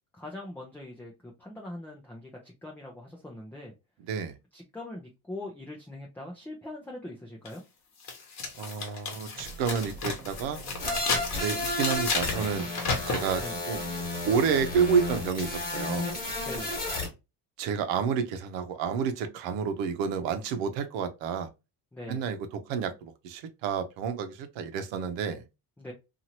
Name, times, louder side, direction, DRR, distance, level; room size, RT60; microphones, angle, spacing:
voice 1, 0.1-3.7 4.5-7.6 13.4-13.5 16.4-16.8 21.9-22.3 25.8-25.9, left 1 dB, 5° left, 0.3 m, -42 dB
sound 1, 7.5-7.6 8.0-13.5, left 4 dB, 40° left, 1.0 m, -33 dB
voice 2, 8.6-10.6 11.4-12.7 13.1-13.4 13.7-13.8 14.3-16.1 17.6-21.5 22.1-22.4 22.7-25.4, right 6 dB, 90° right, 0.7 m, -29 dB
sound 2, 9.3-16.6, right 4 dB, 55° right, 1.3 m, -46 dB
sound 3, 10.8-17.1, left 2 dB, 20° left, 1.3 m, -33 dB
2.9 x 2.5 x 2.8 m
cardioid pair, 145°, 43 cm